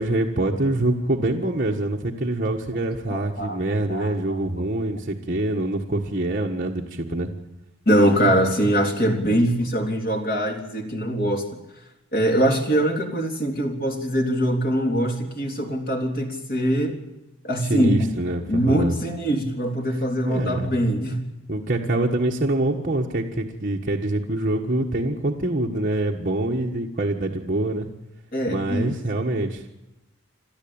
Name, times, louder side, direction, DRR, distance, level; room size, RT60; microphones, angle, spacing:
voice 1, 0.0-7.3 17.7-18.9 20.2-20.7 21.5-27.9 28.5-29.7, right 1 dB, 40° right, -1 dB, 1.5 m, -25 dB
voice 2, 3.1-4.4 7.9-11.4 12.1-17.0 17.4-18.2 18.5-21.2 28.3-29.0, equal, 45° left, 3 dB, 3.4 m, -23 dB
28.0 x 13.0 x 8.8 m, 0.98 s
head